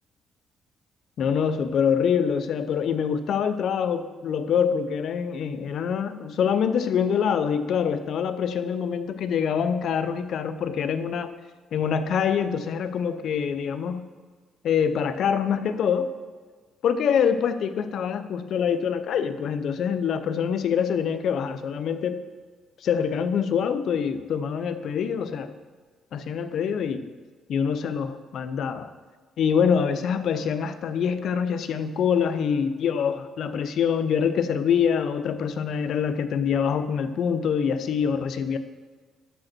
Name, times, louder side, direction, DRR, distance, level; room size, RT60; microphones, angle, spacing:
voice 1, 1.2-11.3 11.7-14.0 14.6-16.1 16.8-22.2 22.8-25.5 26.1-27.1 27.5-28.9 29.4-38.6, left 7 dB, 70° left, 11 dB, 0.6 m, -25 dB
12.0 x 5.1 x 4.4 m, 1.5 s
cardioid pair, 90°, 0 cm